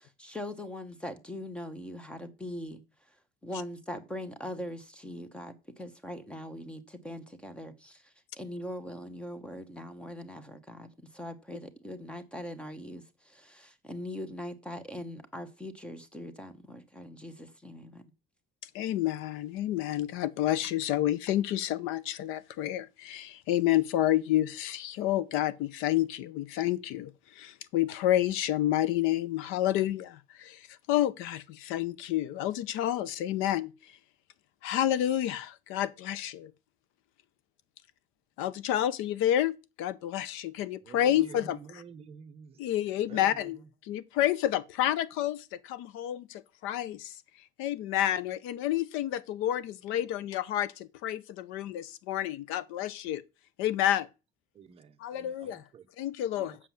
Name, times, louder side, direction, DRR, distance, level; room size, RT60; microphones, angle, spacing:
voice 1, 0.0-2.8 3.4-18.0, left 1 dB, 5° left, 0.9 m, -41 dB
voice 2, 18.7-33.7 34.6-36.5 38.4-41.8 42.6-47.2 47.6-53.2 53.6-54.1 55.0-55.6 56.0-56.6, left 12 dB, 85° left, 0.7 m, -29 dB
voice 3, 40.8-42.6 43.1-43.7 54.5-55.9 56.3-56.6, right 6 dB, 30° right, 0.7 m, -49 dB
7.7 x 6.3 x 7.2 m
cardioid pair, 175°, 20 cm